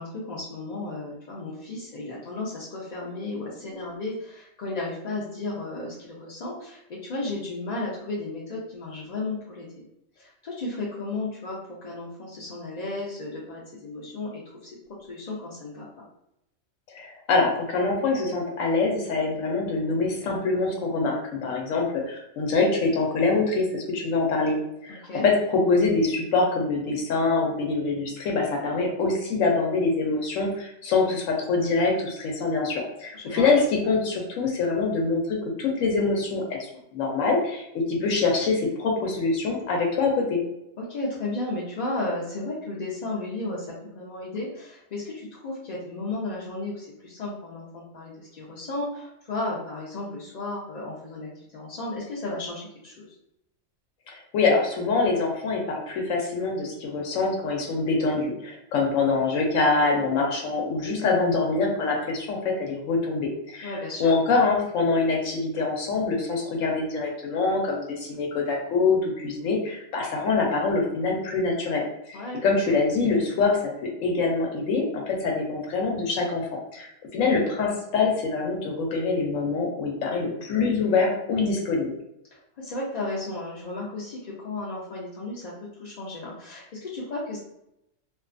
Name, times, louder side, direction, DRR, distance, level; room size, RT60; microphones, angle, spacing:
voice 1, 0.0-9.8 10.2-14.7 15.1-16.0 24.9-25.2 33.1-33.5 40.8-53.1 63.6-64.1 72.1-72.8 82.3-85.5 85.8-87.4, left 2 dB, 65° left, -5 dB, 0.4 m, -34 dB
voice 2, 16.9-24.6 24.8-36.6 36.9-40.4 54.1-63.7 64.0-71.8 72.1-76.5 76.7-81.9, left 3 dB, 85° left, 0 dB, 1.0 m, -25 dB
2.5 x 2.2 x 2.4 m, 0.81 s
omnidirectional pair, 1.3 m